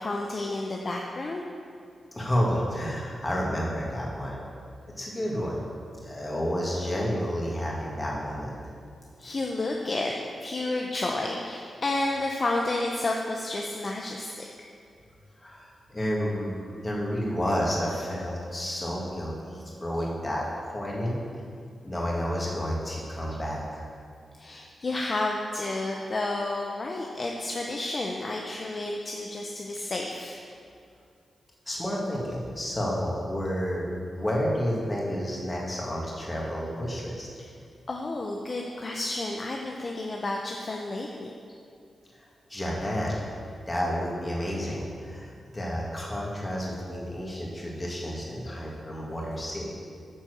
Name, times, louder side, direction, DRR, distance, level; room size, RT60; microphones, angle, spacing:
voice 1, 0.0-1.4 9.2-10.1 10.4-14.5 24.4-30.4 37.9-41.3, left 2 dB, 45° left, 0 dB, 0.7 m, -31 dB
voice 2, 2.1-4.4 5.0-5.6 6.0-8.6 15.4-21.2 21.8-23.8 31.7-37.3 42.5-43.2 43.7-49.7, equal, 25° left, -4 dB, 2.1 m, -30 dB
9.3 x 4.5 x 6.4 m, 2.3 s
cardioid pair, 70°, 0 cm